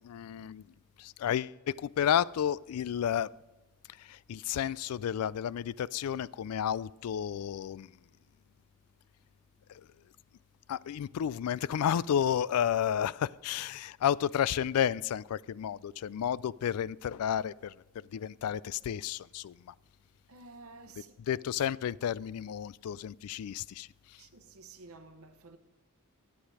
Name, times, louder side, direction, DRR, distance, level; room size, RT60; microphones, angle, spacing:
voice 1, 0.0-0.6 1.0-3.3 4.0-7.9 9.7-9.8 10.7-17.7 18.1-19.7 21.3-23.9, left 9 dB, 80° left, 0.3 m, -31 dB
voice 2, 20.3-21.1 24.2-25.6, right 3 dB, 70° right, 0.9 m, -51 dB
11.5 x 8.4 x 4.8 m
head